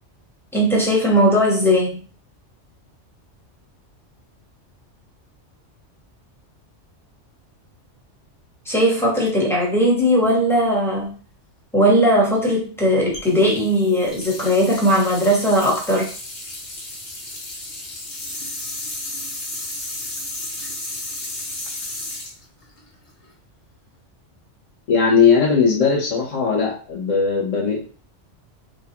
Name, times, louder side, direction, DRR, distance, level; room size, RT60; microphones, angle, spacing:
voice 1, 0.5-2.0 8.6-11.1 11.7-16.1, equal, ahead, -3 dB, 1.1 m, -18 dB
sound 1, 13.1-23.3, left 1 dB, 65° left, 1.4 m, -33 dB
voice 2, 24.9-27.8, left 5 dB, 85° left, -1 dB, 1.3 m, -18 dB
3.7 x 2.9 x 2.9 m, 0.37 s
omnidirectional pair, 1.3 m